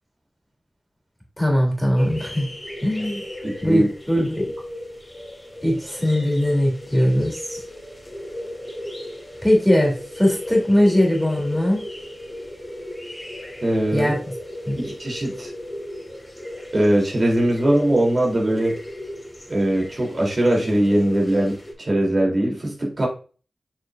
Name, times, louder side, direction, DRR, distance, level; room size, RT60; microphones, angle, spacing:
voice 1, 1.4-2.5 2.8-3.2 3.6-4.5 5.6-7.6 9.4-11.8 13.9-14.2 14.7-14.8, equal, 5° right, 0 dB, 3.3 m, -20 dB
sound 1, 2.0-21.7, left 1 dB, 10° left, 3.5 m, -36 dB
voice 2, 3.4-3.9 13.6-14.1 14.8-15.5 16.7-18.7 19.5-23.1, right 1 dB, 45° right, -1 dB, 3.5 m, -21 dB
7.5 x 6.3 x 2.6 m, 0.37 s
cardioid pair, 50°, 0 cm